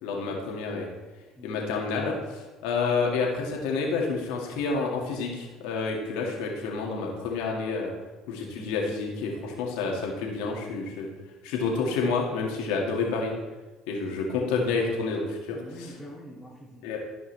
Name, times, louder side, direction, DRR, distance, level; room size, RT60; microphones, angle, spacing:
voice 1, 0.0-0.9 1.4-7.9 8.3-11.1 11.4-13.3 13.9-16.0 16.8-17.0, left 4 dB, 80° left, -1 dB, 2.1 m, -29 dB
voice 2, 15.5-17.0, equal, 5° left, -8 dB, 2.3 m, -45 dB
13.5 x 5.5 x 3.4 m, 1.2 s
supercardioid pair, 90°, 0 cm